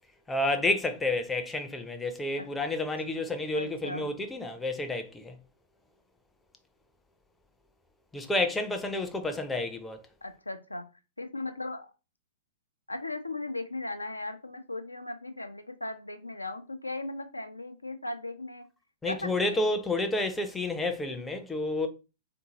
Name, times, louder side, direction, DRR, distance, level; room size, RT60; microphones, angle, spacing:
voice 1, 0.3-5.4 8.1-10.0 19.0-21.9, left 2 dB, 10° left, 0.5 m, -30 dB
voice 2, 3.5-4.1 10.2-10.9 11.2-11.9 12.9-18.7 19.0-19.7, left 2 dB, 90° left, 0.5 m, -37 dB
3.8 x 2.6 x 2.8 m
figure-of-eight pair, 105°, 0 cm